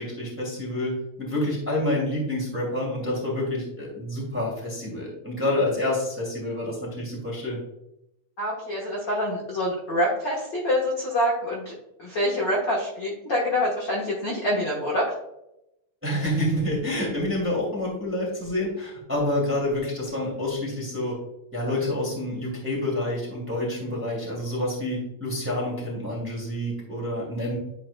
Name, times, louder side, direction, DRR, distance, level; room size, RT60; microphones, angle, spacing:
voice 1, 0.0-7.6 16.0-21.2 21.5-27.6, left 1 dB, 5° right, -4 dB, 1.8 m, -28 dB
voice 2, 8.4-11.7 12.0-15.1, left 1 dB, 50° left, -4 dB, 1.5 m, -26 dB
10.5 x 4.6 x 2.2 m, 0.85 s
omnidirectional pair, 3.6 m